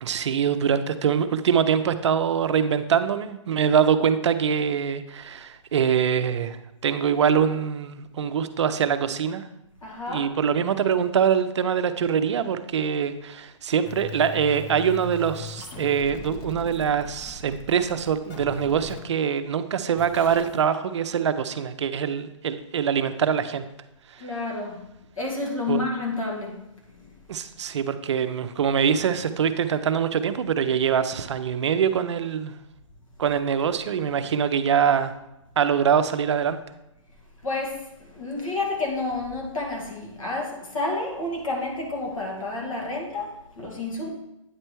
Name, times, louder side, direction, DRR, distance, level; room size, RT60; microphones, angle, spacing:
voice 1, 0.0-6.6 6.8-9.4 10.1-23.6 24.1-24.2 25.7-25.8 27.3-32.6 33.2-35.1 35.6-36.6, right 7 dB, 60° right, 10 dB, 0.5 m, -24 dB
voice 2, 9.8-10.3 24.2-24.9 25.2-27.2 37.4-44.1, left 2 dB, 85° left, -1 dB, 2.1 m, -30 dB
sound 1, 13.8-19.0 20.0-20.6, left 4 dB, 20° left, 0.5 m, -40 dB
8.8 x 3.3 x 4.5 m, 0.89 s
hypercardioid pair, 155°, 17 cm